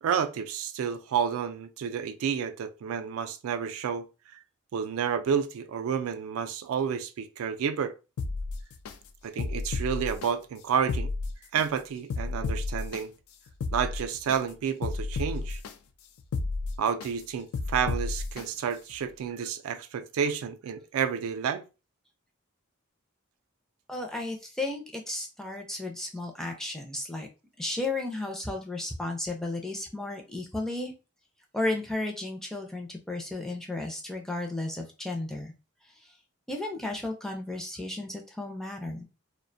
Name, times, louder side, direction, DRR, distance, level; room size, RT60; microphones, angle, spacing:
voice 1, 0.0-4.4 4.7-7.9 9.2-11.1 11.5-13.1 13.7-15.6 16.8-21.6, right 7 dB, 75° right, 0.3 m, -30 dB
sound 1, 8.2-8.9 9.4-10.3 10.8-11.7 12.1-13.0 13.5-14.4 14.8-15.7 16.2-17.1 17.5-18.4 18.9-19.0, left 3 dB, 80° left, 0.3 m, -32 dB
voice 2, 23.9-27.3 27.6-30.9 31.5-35.5 36.5-39.0, left 2 dB, ahead, 0.4 m, -34 dB
2.4 x 2.1 x 2.5 m
head